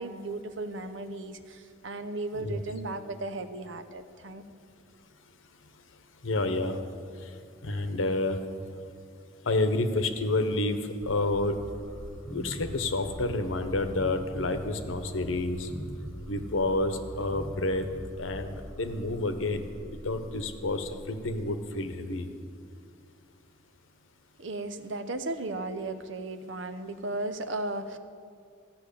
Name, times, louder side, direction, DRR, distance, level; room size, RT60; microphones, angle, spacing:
voice 1, 0.0-4.4 24.4-28.0, right 2 dB, 75° right, 10 dB, 0.7 m, -35 dB
voice 2, 6.2-6.8 7.6-8.4 9.5-10.8 11.1-11.6 12.3-15.7 16.3-17.9 18.2-19.7 20.0-22.3, left 2 dB, 90° left, 8 dB, 0.9 m, -29 dB
sound 1, 11.0-21.9, equal, 5° left, 0.8 m, -42 dB
14.5 x 6.1 x 8.5 m, 2.3 s
head